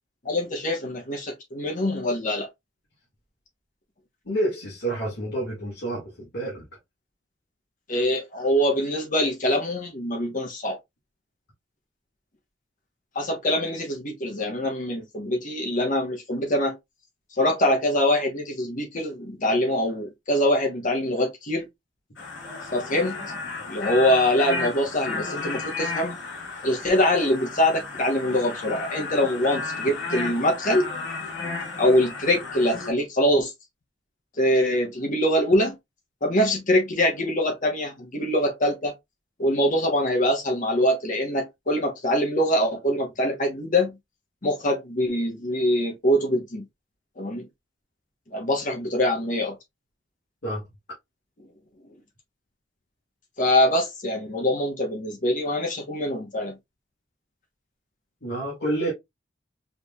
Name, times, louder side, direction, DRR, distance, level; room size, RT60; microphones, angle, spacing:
voice 1, 0.2-2.5 7.9-10.8 13.1-16.7 17.3-21.7 22.7-23.1 23.7-26.2 26.6-30.9 31.8-33.5 34.4-35.7 36.2-38.9 39.4-43.9 44.4-46.6 47.2-47.5 48.3-49.5 53.4-56.5, left 1 dB, 45° left, 1.2 m, -24 dB
voice 2, 4.3-6.7 50.4-50.7 58.2-58.9, right 1 dB, 60° left, 2.0 m, -28 dB
sound 1, 22.2-32.9, left 3 dB, 85° left, 1.6 m, -33 dB
4.9 x 3.2 x 2.4 m
head